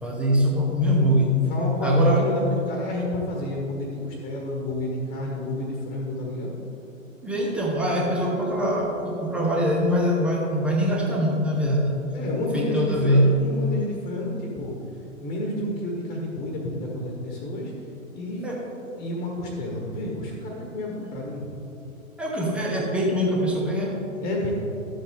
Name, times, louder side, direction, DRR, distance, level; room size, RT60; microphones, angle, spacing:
voice 1, 0.0-1.4 1.8-2.2 7.2-12.0 12.5-13.3 18.4-18.7 22.2-24.0, equal, 5° right, -2 dB, 0.6 m, -23 dB
voice 2, 1.5-6.5 12.1-14.7 15.2-17.7 18.1-18.4 19.0-21.6 24.2-24.5, left 1 dB, 15° left, -1 dB, 1.3 m, -30 dB
12.5 x 7.6 x 3.6 m, 3.0 s
figure-of-eight pair, 120°, 41 cm